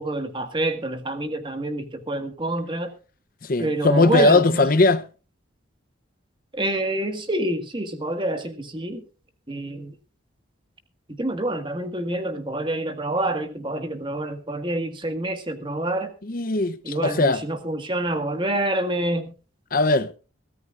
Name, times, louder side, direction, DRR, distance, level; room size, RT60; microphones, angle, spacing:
voice 1, 0.0-2.9 3.6-4.7 6.5-9.0 9.5-9.9 11.1-16.1 16.8-19.3, right 1 dB, 25° right, 1.7 m, -27 dB
voice 2, 3.4-5.0 16.3-17.4 19.7-20.1, left 2 dB, 45° left, 0.7 m, -19 dB
23.0 x 14.0 x 2.5 m
head